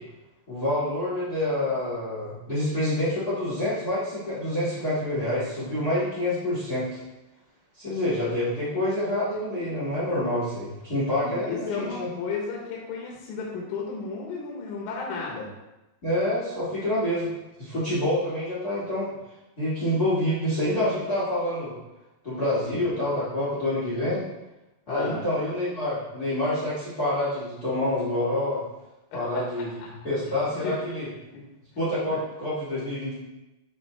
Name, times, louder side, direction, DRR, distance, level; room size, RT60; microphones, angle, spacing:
voice 1, 0.5-7.0 7.8-12.1 16.0-17.3 17.6-19.1 19.6-21.7 22.2-24.2 24.9-28.6 29.1-29.8 30.0-31.1 31.7-33.1, left 1 dB, 55° left, -9 dB, 1.0 m, -27 dB
voice 2, 11.2-15.5 22.6-23.0 24.9-25.3 29.1-29.7 30.3-30.8 31.3-31.4 32.1-32.2, left 4 dB, 75° left, -3 dB, 3.5 m, -34 dB
11.5 x 4.1 x 3.4 m, 0.99 s
omnidirectional pair, 5.7 m